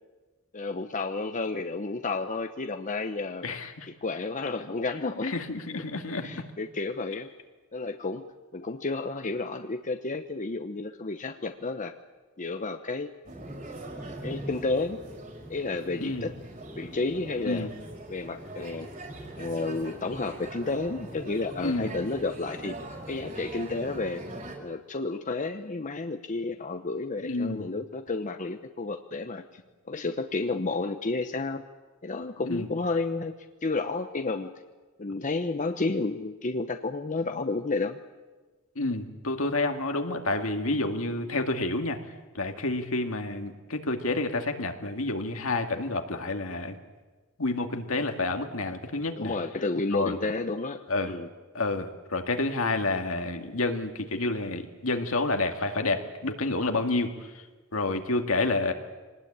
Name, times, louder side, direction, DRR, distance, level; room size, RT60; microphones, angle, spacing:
voice 1, 0.5-3.5 4.0-5.3 6.2-7.3 7.7-8.2 8.5-11.9 12.4-13.1 14.2-15.0 15.5-16.3 16.8-17.7 18.1-18.9 19.4-22.7 23.1-24.2 24.6-29.4 29.9-31.6 32.0-33.3 33.6-34.5 35.0-38.0 49.2-50.8 51.1-51.3, left 3 dB, 40° left, 7 dB, 0.9 m, -31 dB
voice 2, 3.4-3.9 5.2-6.3 16.0-16.3 17.4-17.7 21.6-21.9 27.2-27.7 32.4-32.7 38.8-42.0 42.3-46.8 47.4-49.3 49.9-50.2 50.9-51.1 51.5-57.1 57.7-58.7, left 2 dB, 75° left, 5 dB, 2.2 m, -29 dB
sound 1, 13.2-24.6, right 1 dB, 40° right, 5.2 m, -41 dB
25.0 x 19.5 x 8.8 m, 1.3 s
head